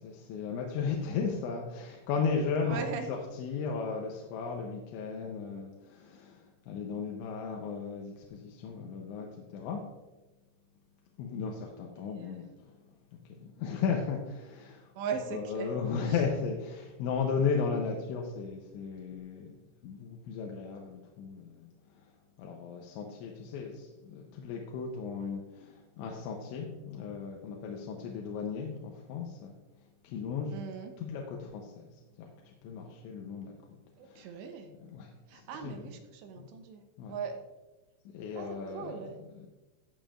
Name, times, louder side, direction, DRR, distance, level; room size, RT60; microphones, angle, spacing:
voice 1, 0.0-9.8 11.2-19.5 19.8-29.5 29.8-30.6 31.0-36.0 36.3-36.5 37.0-37.2 38.1-39.5, left 5 dB, 90° left, 0 dB, 3.2 m, -36 dB
voice 2, 2.7-3.1 12.2-12.4 15.0-15.7 30.5-30.9 34.0-34.7 35.3-37.4 38.4-39.1, right 6 dB, 80° right, 5 dB, 3.0 m, -39 dB
14.5 x 7.1 x 2.5 m, 1.1 s
omnidirectional pair, 5.2 m